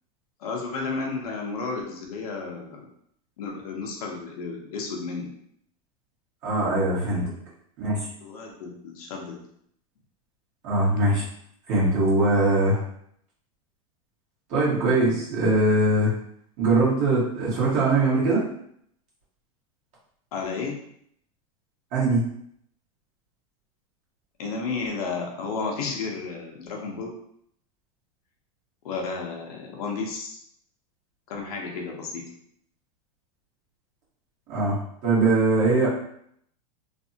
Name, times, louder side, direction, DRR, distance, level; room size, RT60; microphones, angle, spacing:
voice 1, 0.4-2.8 3.4-5.3 8.2-9.4 20.3-20.7 24.4-27.1 28.8-30.4 31.3-32.2, left 4 dB, 80° left, 0 dB, 0.8 m, -32 dB
voice 2, 6.4-7.3 7.8-8.0 10.6-11.2 11.7-12.8 14.5-16.1 16.6-18.4 21.9-22.3 34.5-35.9, right 2 dB, 40° right, -6 dB, 1.3 m, -21 dB
3.3 x 2.0 x 2.7 m, 0.68 s
supercardioid pair, 145°, 19 cm